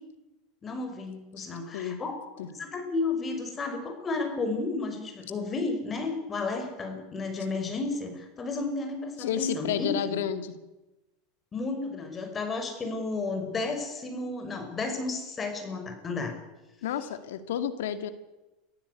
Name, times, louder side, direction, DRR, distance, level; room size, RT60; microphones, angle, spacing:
voice 1, 0.6-2.1 2.5-10.2 11.5-16.3, left 3 dB, 25° left, 6 dB, 5.8 m, -32 dB
voice 2, 1.7-2.0 2.4-2.5 9.2-10.5 16.8-18.1, left 9 dB, 75° left, 10 dB, 2.1 m, -31 dB
24.5 x 15.0 x 8.4 m, 1.0 s
hypercardioid pair, 95°, 0 cm